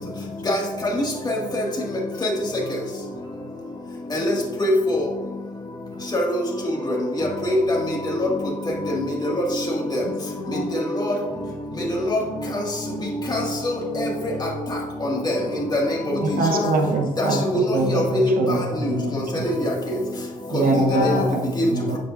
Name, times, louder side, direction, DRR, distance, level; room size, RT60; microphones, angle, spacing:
voice 1, 0.0-0.6 1.8-1.9 2.1-2.3 10.0-10.8 16.1-17.6 20.6-21.4, left 5 dB, 75° left, 3 dB, 1.1 m, -32 dB
voice 2, 1.3-1.6 2.2-2.3 4.2-4.7 6.1-6.4 7.2-7.6 8.2-8.3 9.4-9.5 11.0-11.1 12.1-12.2 13.3-13.4 13.6-13.7 14.0-14.1 15.2-15.3 15.7-15.8 17.5-17.6 17.9-18.0 19.4-19.5 20.7-20.9, left 1 dB, 25° left, -3 dB, 1.9 m, -22 dB
voice 3, 16.2-19.7 20.5-22.0, right 2 dB, 80° right, 2 dB, 1.0 m, -24 dB
9.1 x 7.5 x 2.5 m, 1.2 s
wide cardioid pair, 120°, 15 cm